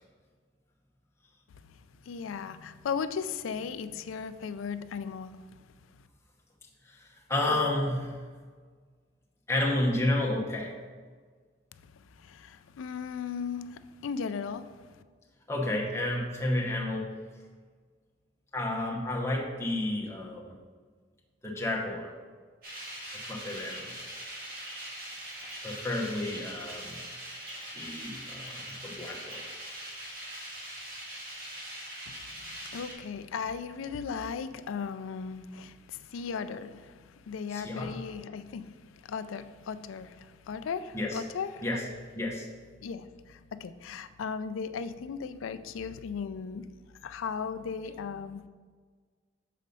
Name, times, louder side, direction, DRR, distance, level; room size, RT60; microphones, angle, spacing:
voice 1, 2.1-5.4 11.7-11.8 12.2-14.7 32.1-41.6 42.8-46.7 47.0-48.5, left 6 dB, 90° left, 0.4 m, -37 dB
voice 2, 6.9-8.1 9.5-10.7 15.5-17.1 18.5-20.6 21.4-22.1 23.1-23.9 25.6-27.1 27.7-29.4 37.5-37.9 40.9-41.2 41.6-41.8 42.1-42.5, left 1 dB, 15° left, 1.0 m, -31 dB
sound 1, 22.6-32.9, right 1 dB, 45° right, 1.7 m, -42 dB
6.6 x 4.1 x 5.3 m
head